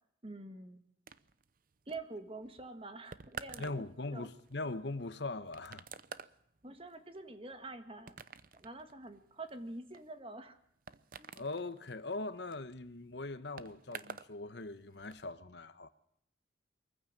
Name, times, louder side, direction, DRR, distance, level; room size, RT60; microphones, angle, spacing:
voice 1, 0.2-0.8 1.9-3.8 4.1-4.3 6.6-8.1 8.5-10.6 11.2-11.3, right 2 dB, 30° right, 1.7 m, -46 dB
sound 1, 1.1-14.4 14.6-15.2, right 6 dB, 50° right, 0.7 m, -51 dB
voice 2, 3.6-5.9 11.3-15.9, left 2 dB, 65° left, 1.1 m, -41 dB
23.0 x 15.0 x 7.5 m
head